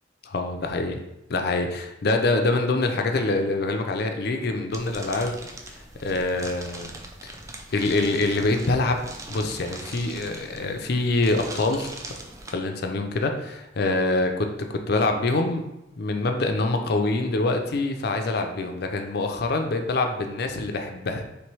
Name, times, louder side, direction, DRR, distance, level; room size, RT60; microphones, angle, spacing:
voice 1, 0.2-1.0 1.3-5.4 6.0-6.9 7.2-7.3 7.7-9.0 9.3-12.0 12.5-15.7 16.0-21.2, left 2 dB, 55° left, 5 dB, 0.5 m, -25 dB
sound 1, 4.7-12.5, right 2 dB, 15° right, 0.4 m, -41 dB
3.2 x 3.1 x 4.6 m, 0.89 s
head